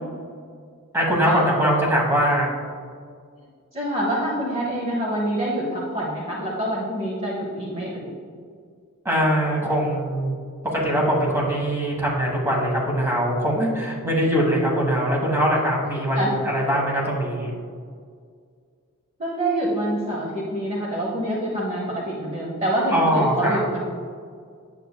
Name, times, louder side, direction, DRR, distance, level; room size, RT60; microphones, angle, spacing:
voice 1, 0.9-2.5 9.0-10.3 10.7-17.5 22.9-23.6, equal, 10° right, -3 dB, 1.3 m, -22 dB
voice 2, 3.7-8.1 16.1-16.3 19.2-23.8, right 1 dB, 30° right, -4 dB, 1.0 m, -26 dB
9.0 x 7.3 x 2.2 m, 2.1 s
head